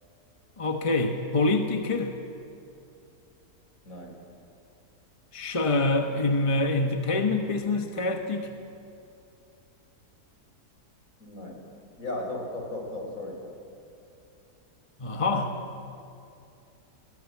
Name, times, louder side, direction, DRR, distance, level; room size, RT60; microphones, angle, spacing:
voice 1, 0.6-2.2 5.3-8.5 15.0-15.6, left 2 dB, 20° left, 4 dB, 1.1 m, -26 dB
voice 2, 3.8-4.2 11.2-11.6 12.0-13.4, left 2 dB, 55° left, 0 dB, 5.1 m, -36 dB
23.0 x 17.5 x 8.4 m, 2.6 s
omnidirectional pair, 1.7 m